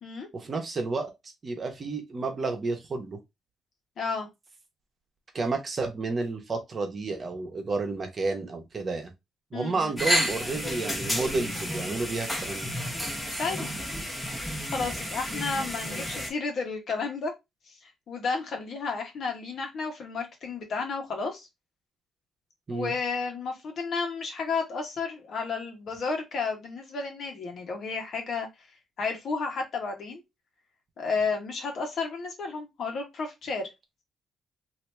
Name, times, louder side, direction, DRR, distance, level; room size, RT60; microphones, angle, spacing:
voice 1, 0.3-1.1 1.4-3.2 5.3-9.1 9.5-12.7 22.7-22.9, right 3 dB, 40° right, 1.0 m, -31 dB
voice 2, 4.0-4.3 9.5-9.9 13.4-13.7 14.7-17.3 17.7-21.5 22.7-28.5 29.0-30.2 31.0-33.7, left 4 dB, 60° left, 1.2 m, -32 dB
sound 1, 10.0-16.3, equal, 10° left, 1.0 m, -31 dB
2.9 x 2.7 x 3.3 m
cardioid pair, 90°, 0 cm